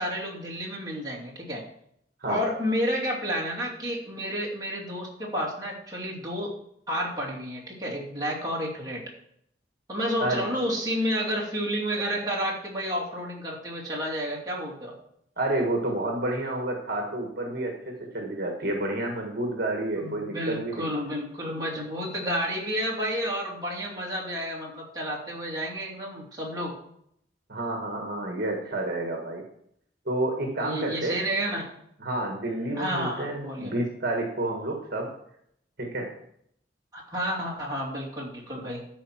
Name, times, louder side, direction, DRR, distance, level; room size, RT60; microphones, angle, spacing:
voice 1, 0.0-1.6 2.2-6.5 6.9-9.0 9.9-15.0 20.0-26.7 30.6-31.7 32.8-33.8 36.9-38.8, equal, 20° right, -4 dB, 2.7 m, -30 dB
voice 2, 15.4-20.9 27.5-29.4 30.0-31.2 32.0-35.1 35.8-36.1, right 1 dB, 55° right, 1 dB, 1.6 m, -29 dB
12.5 x 4.8 x 5.9 m, 0.72 s
head